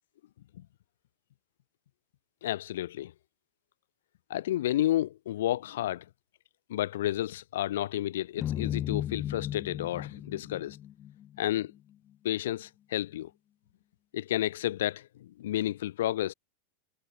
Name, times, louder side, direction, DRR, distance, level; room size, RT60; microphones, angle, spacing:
voice 1, 2.4-3.1 4.3-6.0 6.7-10.8 11.4-11.7 12.2-13.3 14.1-16.3, left 13 dB, 60° left, 2.2 m, -31 dB
sound 1, 8.4-11.6, left 11 dB, 30° left, 3.1 m, -35 dB
figure-of-eight pair, 90°, 0 cm